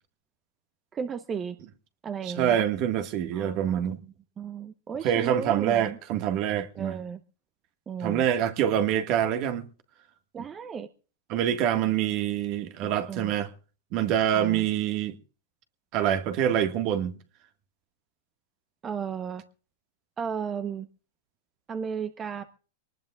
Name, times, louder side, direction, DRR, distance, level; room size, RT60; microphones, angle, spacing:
voice 1, 0.9-1.6 2.0-2.6 3.3-3.8 4.4-6.0 6.8-7.2 7.9-8.2 10.3-10.9 12.8-13.3 14.3-14.6 18.8-19.4 20.2-20.9 21.7-22.4, right 7 dB, 25° right, 1.0 m, -34 dB
voice 2, 2.2-4.0 5.0-7.0 8.0-9.7 11.3-13.5 13.9-15.2 15.9-17.1, right 10 dB, 45° right, 1.8 m, -26 dB
23.5 x 19.5 x 2.4 m
hypercardioid pair, 120°, 0 cm